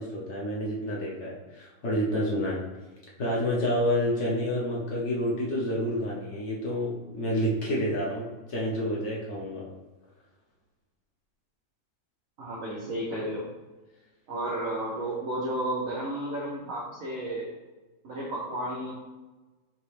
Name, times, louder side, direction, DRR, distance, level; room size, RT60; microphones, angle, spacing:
voice 1, 0.0-2.6 3.2-9.7, equal, 60° left, -4 dB, 0.8 m, -29 dB
voice 2, 12.4-13.5 14.3-17.5 18.0-18.9, right 1 dB, 60° right, -4 dB, 0.9 m, -32 dB
5.1 x 2.9 x 3.2 m, 1.2 s
omnidirectional pair, 2.1 m